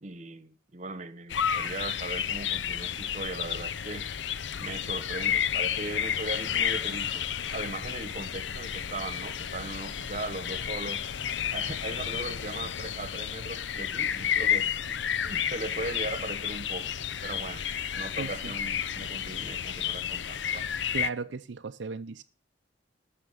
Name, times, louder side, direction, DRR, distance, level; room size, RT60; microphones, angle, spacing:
voice 1, 0.0-4.1 4.6-11.0 11.5-16.9 17.2-17.6 17.9-20.7, right 2 dB, 40° right, 1.1 m, -38 dB
sound 1, 1.3-21.1, left 8 dB, 75° left, 0.6 m, -31 dB
voice 2, 18.2-18.5 20.9-22.2, right 4 dB, 75° right, 0.5 m, -36 dB
14.0 x 6.0 x 8.2 m
head